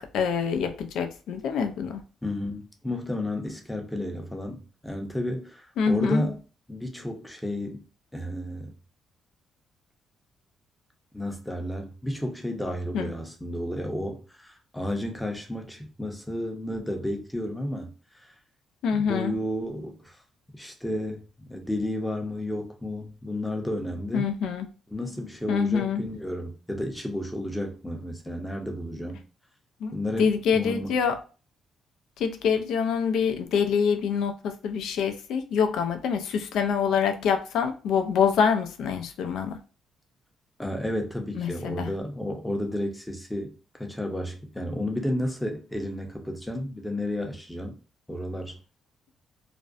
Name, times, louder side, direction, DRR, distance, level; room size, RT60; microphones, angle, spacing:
voice 1, 0.0-1.9 5.8-6.3 12.9-13.1 18.8-19.4 24.1-24.7 25.5-26.0 29.8-31.2 32.2-39.6 41.4-41.9, left 6 dB, 80° left, 0.4 m, -25 dB
voice 2, 2.2-6.4 6.7-7.8 8.1-8.7 11.1-18.3 18.9-20.2 20.5-24.3 24.9-29.2 29.9-30.9 40.6-47.8 48.1-48.6, left 1 dB, 5° left, 0.6 m, -32 dB
2.5 x 2.1 x 2.4 m
cardioid pair, 90°, 0 cm